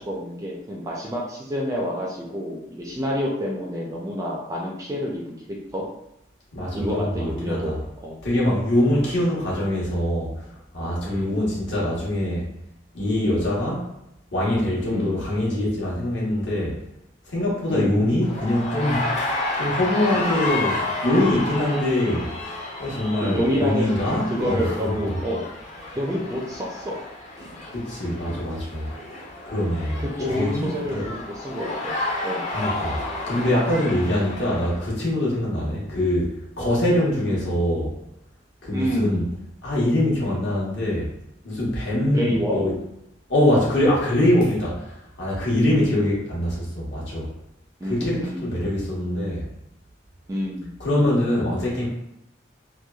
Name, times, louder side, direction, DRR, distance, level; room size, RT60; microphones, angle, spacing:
voice 1, 0.0-5.8 6.7-7.7 8.0-8.2 11.1-11.4 14.8-15.2 17.7-18.0 20.1-20.2 22.9-25.4 26.0-27.0 27.4-27.5 29.5-29.6 30.0-32.0 32.2-32.5 38.7-39.2 40.3-40.4 42.1-42.7 45.7-45.9 47.8-48.4 50.3-50.7, equal, 15° right, -3 dB, 0.4 m, -28 dB
voice 2, 6.5-7.8 8.2-10.5 10.7-12.4 12.9-13.9 14.3-16.8 17.3-22.3 22.8-25.2 27.7-28.9 29.5-31.1 32.5-33.0 33.3-36.3 36.6-37.9 38.6-39.3 39.6-41.1 41.4-42.7 43.3-47.3 47.8-49.4 50.8-51.9, left 1 dB, 60° left, -6 dB, 1.0 m, -23 dB
sound 1, 18.2-34.8, left 2 dB, 35° left, 0.6 m, -31 dB
3.0 x 2.2 x 2.3 m, 0.84 s
head